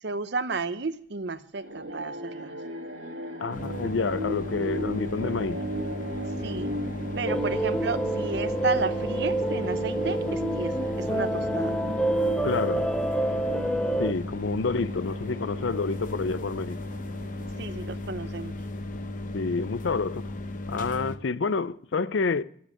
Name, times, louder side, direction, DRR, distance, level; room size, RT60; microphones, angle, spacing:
voice 1, 0.0-2.5 6.4-6.7 7.2-11.9 17.6-18.6, right 3 dB, 60° right, 0.7 m, -32 dB
sound 1, 1.5-18.1, equal, 80° right, 2.2 m, -38 dB
voice 2, 3.4-5.6 12.4-12.9 14.0-16.8 19.3-20.3 20.7-22.4, left 4 dB, 70° left, 0.5 m, -28 dB
sound 2, 3.5-21.2, left 2 dB, 45° left, 0.8 m, -36 dB
sound 3, 7.3-14.1, right 1 dB, 5° left, 0.5 m, -28 dB
12.0 x 7.4 x 8.5 m
head